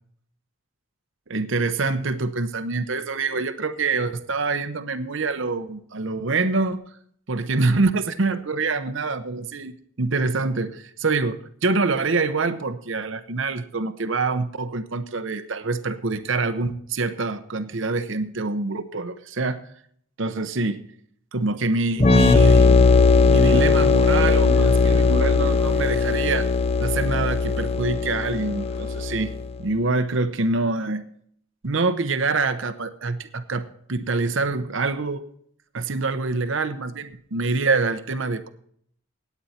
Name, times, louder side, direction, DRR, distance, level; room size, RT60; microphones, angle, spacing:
voice 1, 1.3-6.8 7.3-19.6 20.2-20.9 21.3-22.8 23.3-26.5 26.8-29.3 29.6-31.0 31.6-35.2 35.7-38.5, right 3 dB, 65° right, 10 dB, 0.8 m, -25 dB
sound 1, 22.0-29.5, left 4 dB, 30° left, 0.5 m, -18 dB
sound 2, 23.4-29.3, left 1 dB, 65° left, 4.1 m, -43 dB
17.5 x 9.2 x 4.3 m, 0.64 s
head